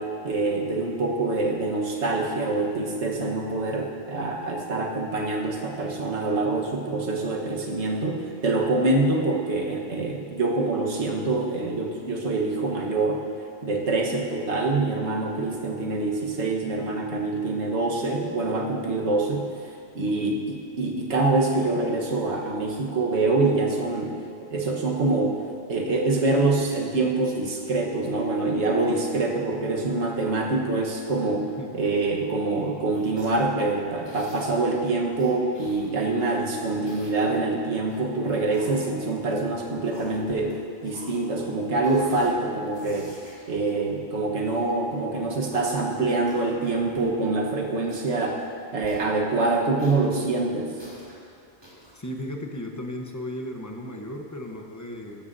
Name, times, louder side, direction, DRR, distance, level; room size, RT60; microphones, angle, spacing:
voice 1, 0.0-13.2 13.6-19.5 19.9-24.1 24.4-25.4 25.7-31.5 31.7-43.1 43.5-48.4 48.7-50.7, right 3 dB, 75° right, 0 dB, 1.6 m, -25 dB
voice 2, 20.0-20.4 31.6-31.8 51.9-55.2, left 1 dB, 15° left, 2 dB, 0.8 m, -35 dB
sound 1, 32.9-33.5 34.0-34.7 35.1-36.4 36.7-37.4 37.9-39.4 39.8-40.5 40.8-41.5 41.8-42.3 42.7-44.6 45.3-45.8 46.2-46.7 46.9-47.1 47.4-47.5 47.8-48.3 48.8-49.2 49.8-51.2 51.6-51.9, equal, 20° right, 2.9 m, -47 dB
15.0 x 12.5 x 2.7 m, 2.5 s
omnidirectional pair, 1.2 m